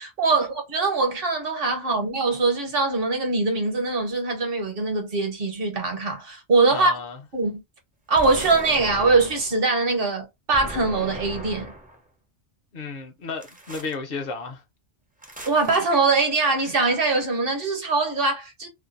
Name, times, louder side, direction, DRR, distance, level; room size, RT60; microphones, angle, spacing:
voice 1, 0.0-6.9 7.3-7.6 8.1-11.7 15.5-18.7, right 3 dB, 60° right, 1.0 m, -22 dB
voice 2, 6.7-7.2 12.7-14.6, left 4 dB, 65° left, 0.8 m, -33 dB
sound 1, 8.1-9.6 10.5-12.0 13.4-14.0 15.2-15.8, right 1 dB, 15° right, 0.3 m, -38 dB
2.5 x 2.2 x 2.5 m
omnidirectional pair, 1.1 m